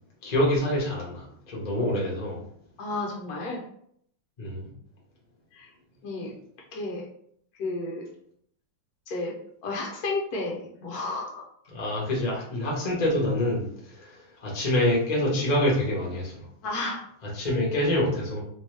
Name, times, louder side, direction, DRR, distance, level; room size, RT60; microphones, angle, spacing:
voice 1, 0.2-2.4 4.4-4.7 11.7-16.5 17.2-18.4, left 1 dB, 30° left, -4 dB, 0.9 m, -26 dB
voice 2, 2.8-3.6 5.5-5.7 6.0-6.3 6.7-7.0 7.6-8.1 9.1-9.3 9.6-11.4 16.6-17.0, left 2 dB, 65° left, -3 dB, 1.0 m, -32 dB
3.3 x 3.0 x 3.2 m, 0.68 s
omnidirectional pair, 2.2 m